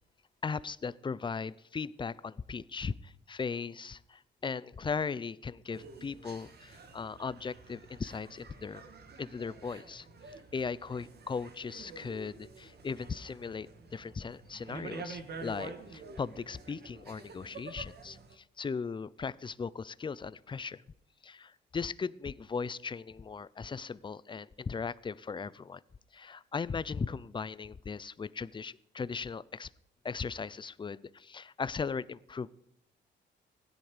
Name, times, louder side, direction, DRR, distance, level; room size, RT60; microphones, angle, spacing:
voice 1, 0.4-8.8 9.2-10.1 10.5-20.8 21.2-25.8 26.1-29.7 30.0-32.5, left 5 dB, 25° left, 19 dB, 0.5 m, -38 dB
sound 1, 5.7-18.4, right 4 dB, 55° right, 1.9 m, -48 dB
16.0 x 10.5 x 5.0 m, 0.79 s
cardioid pair, 90°, 20 cm